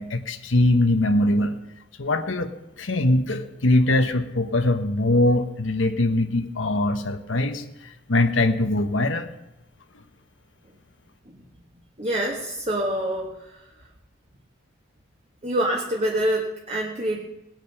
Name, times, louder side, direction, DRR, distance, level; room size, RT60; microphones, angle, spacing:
voice 1, 0.0-1.6 2.0-9.3, left 2 dB, 75° left, 7 dB, 1.1 m, -22 dB
voice 2, 12.0-13.4 15.4-17.2, right 1 dB, 35° right, -1 dB, 1.6 m, -25 dB
18.5 x 9.2 x 5.6 m, 0.95 s
head